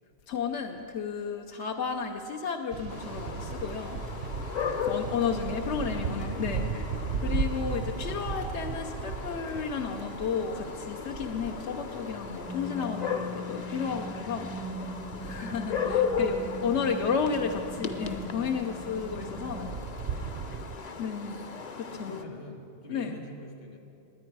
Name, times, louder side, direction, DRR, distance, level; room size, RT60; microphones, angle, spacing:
voice 1, 0.3-4.0 4.8-6.7 7.2-14.5 15.2-19.7 21.0-21.4 21.8-22.2 22.9-23.2, left 6 dB, 90° left, 4 dB, 1.0 m, -32 dB
sound 1, 2.7-12.9 14.6-20.8, right 5 dB, 75° right, 0.9 m, -37 dB
sound 2, 2.9-22.2, left 6 dB, 45° left, 0.7 m, -36 dB
voice 2, 5.0-7.2 15.8-16.4 16.7-16.9 17.3-17.4 20.2-20.8 21.3-21.5 21.9-23.8, left 2 dB, 60° left, 4 dB, 1.5 m, -47 dB
sound 3, 12.5-19.7, left 1 dB, 10° right, 0.4 m, -41 dB
20.0 x 9.5 x 4.7 m, 2.7 s
omnidirectional pair, 1.1 m